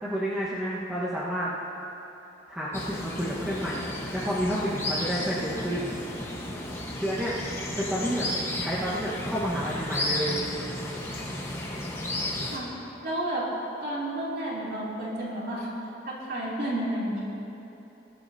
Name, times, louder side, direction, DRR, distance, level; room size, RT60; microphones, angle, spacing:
voice 1, 0.0-1.5 2.5-3.8 4.1-6.0 7.0-7.4 7.8-8.3 8.5-10.4, equal, 5° right, -9 dB, 1.4 m, -30 dB
sound 1, 2.7-12.6, left 1 dB, 15° left, 1.3 m, -33 dB
voice 2, 13.0-13.4 13.8-15.7 16.0-17.2, right 1 dB, 55° right, -6 dB, 3.1 m, -31 dB
21.5 x 12.5 x 2.8 m, 3.0 s
head